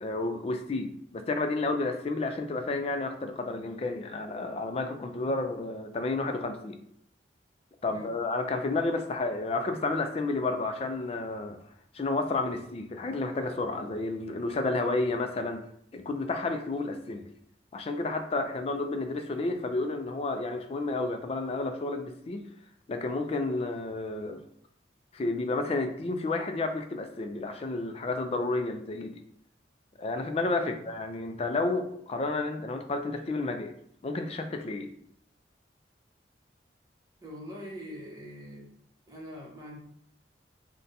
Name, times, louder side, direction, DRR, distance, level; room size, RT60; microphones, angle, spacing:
voice 1, 0.0-6.8 7.8-11.6 11.9-15.6 15.9-17.2 17.7-22.4 22.9-24.4 25.1-29.2 30.0-33.7 34.0-34.9, left 2 dB, 35° left, 6 dB, 0.3 m, -31 dB
voice 2, 37.2-38.7 39.1-39.8, equal, 20° right, -4 dB, 0.9 m, -43 dB
2.6 x 2.2 x 4.0 m, 0.70 s
head